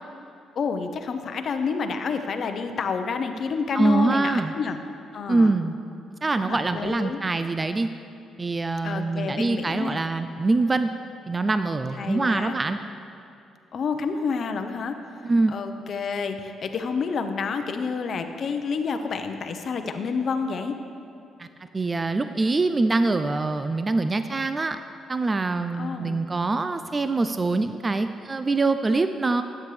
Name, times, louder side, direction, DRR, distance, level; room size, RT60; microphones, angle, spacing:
voice 1, 0.6-4.8 5.1-5.6 6.4-7.2 8.8-10.0 12.0-12.5 13.7-14.9 15.5-20.7 25.8-26.2, left 5 dB, 55° left, 7 dB, 0.7 m, -29 dB
voice 2, 3.7-4.5 5.3-5.8 6.2-7.9 8.4-10.9 11.3-12.8 15.2-15.5 21.4-21.5 21.7-24.8 25.1-29.4, right 3 dB, 25° right, 9 dB, 0.3 m, -24 dB
12.5 x 8.7 x 3.2 m, 2.6 s
cardioid pair, 90°, 0 cm